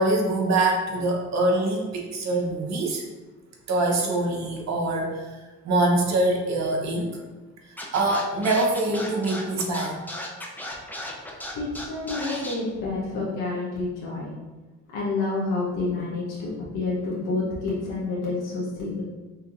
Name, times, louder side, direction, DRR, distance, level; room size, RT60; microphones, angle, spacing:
voice 1, 0.0-3.0 3.7-5.4 5.6-7.2 7.9-10.0, right 2 dB, 60° right, 0 dB, 1.0 m, -24 dB
Scratching (performance technique), 7.8-12.5, left 1 dB, 5° left, 0.7 m, -35 dB
voice 2, 11.5-14.3 14.9-19.0, left 3 dB, 85° left, -7 dB, 1.2 m, -29 dB
5.7 x 2.8 x 2.6 m, 1.2 s
cardioid pair, 90°, 30 cm